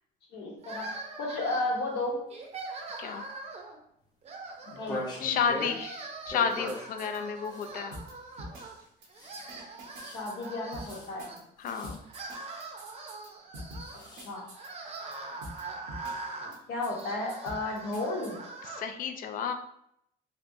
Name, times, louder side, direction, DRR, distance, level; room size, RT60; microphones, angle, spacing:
voice 1, 0.3-0.9 1.2-2.3 4.8-5.0 10.0-11.4 14.1-14.4 16.7-18.4, left 2 dB, 80° left, -1 dB, 1.0 m, -33 dB
sound 1, 0.6-1.9 2.3-3.8 4.2-5.2 5.5-8.8 9.1-11.4 11.9-18.8, right 3 dB, 40° right, 0.6 m, -42 dB
sound 2, 4.7-5.8 6.2-6.9 7.5-7.7 9.2-9.4 9.8-10.2 10.8-11.1 11.6-12.0 13.8-14.3, left 1 dB, 25° left, 0.8 m, -39 dB
voice 2, 5.2-8.0 11.6-12.0 18.8-19.5, left 7 dB, 55° left, 7 dB, 0.4 m, -31 dB
sound 3, 6.3-7.6 7.9-8.1 8.4-9.1 9.3-10.5 10.7-11.4 11.7-13.3 13.5-15.1 15.4-15.6 15.9-16.6 16.8-17.0 17.3-18.3, right 1 dB, 90° right, 0.9 m, -45 dB
3.2 x 2.8 x 2.6 m, 0.73 s
cardioid pair, 110°, 17 cm